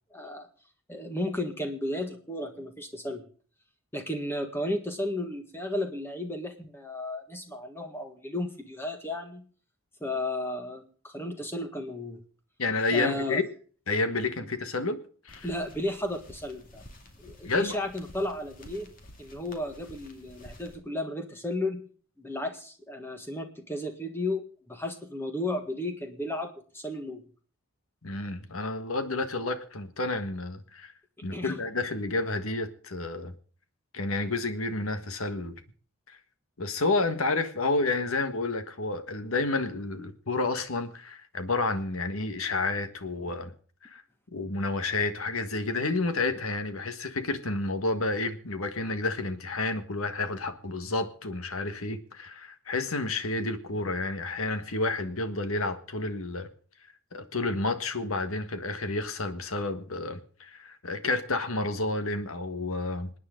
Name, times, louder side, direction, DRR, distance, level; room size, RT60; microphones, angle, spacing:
voice 1, 0.1-0.5 0.9-3.3 3.9-9.5 10.0-12.2 12.9-13.4 14.4-14.5 15.4-16.8 17.2-18.9 19.2-21.9 22.2-27.2 31.3-31.6, left 1 dB, 10° left, 5 dB, 1.7 m, -34 dB
voice 2, 12.6-13.4 13.9-15.0 15.2-15.5 17.4-17.8 28.0-30.9 31.2-33.3 33.9-35.6 36.1-36.2 36.6-43.5 43.8-44.0 44.3-56.5 57.1-63.1, left 3 dB, 85° left, 8 dB, 1.6 m, -30 dB
sound 1, 15.3-20.8, left 1 dB, 40° left, 2.4 m, -51 dB
26.5 x 9.5 x 3.8 m, 0.44 s
head